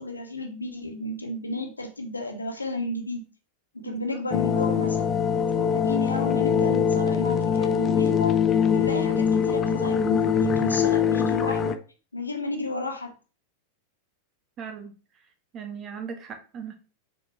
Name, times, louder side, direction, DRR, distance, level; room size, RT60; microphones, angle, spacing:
voice 1, 0.0-3.3 3.7-5.2 5.6-8.4 8.7-11.8 12.1-13.1, left 2 dB, 80° left, 4 dB, 1.6 m, -32 dB
sound 1, 4.3-11.8, left 7 dB, 25° left, 0.7 m, -23 dB
voice 2, 14.6-14.9 15.5-16.7, right 6 dB, 30° right, 6 dB, 1.6 m, -38 dB
7.2 x 5.8 x 3.0 m, 0.34 s
figure-of-eight pair, 90°, 0 cm